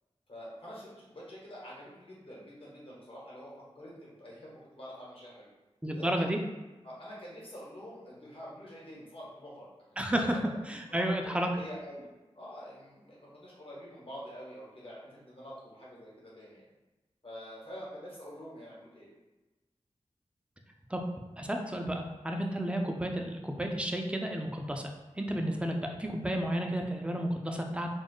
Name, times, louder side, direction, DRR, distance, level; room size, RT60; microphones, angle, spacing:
voice 1, 0.3-5.5 5.9-6.2 6.8-9.7 10.1-10.6 10.9-12.1 12.3-16.6 17.2-19.1, equal, 55° left, -6 dB, 1.1 m, -46 dB
voice 2, 5.8-6.4 10.0-10.4 10.7-11.5 20.9-21.0 21.4-24.8 25.2-27.9, right 1 dB, 10° right, 3 dB, 0.4 m, -32 dB
2.3 x 2.0 x 3.6 m, 1.1 s
cardioid pair, 40°, 11 cm